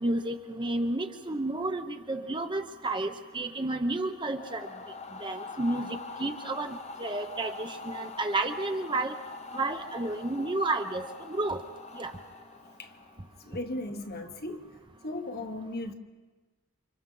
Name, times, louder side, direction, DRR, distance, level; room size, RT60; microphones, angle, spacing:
voice 1, 0.0-4.7 5.2-9.2 9.5-11.6 11.9-12.1, right 2 dB, 20° right, 0.8 m, -31 dB
sound 1, 4.3-13.4, left 4 dB, 30° left, 0.7 m, -44 dB
voice 2, 13.4-14.7 15.0-15.9, left 1 dB, 45° left, 1.3 m, -36 dB
29.0 x 26.0 x 3.9 m
head